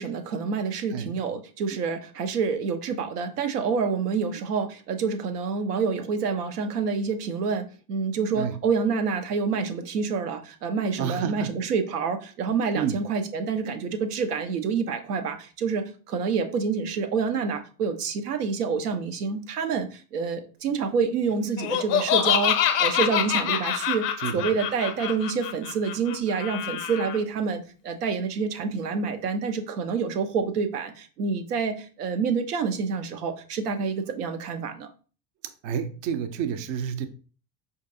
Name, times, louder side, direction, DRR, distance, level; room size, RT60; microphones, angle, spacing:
voice 1, 0.0-24.0 24.3-34.9, right 5 dB, 80° right, 6 dB, 0.7 m, -27 dB
voice 2, 11.0-11.5 12.7-13.0 24.2-24.5 35.6-37.1, right 8 dB, 45° right, 9 dB, 0.5 m, -29 dB
Laughter, 21.6-27.2, left 10 dB, 45° left, 0.6 m, -26 dB
4.5 x 2.6 x 2.5 m, 0.38 s
hypercardioid pair, 75°, 46 cm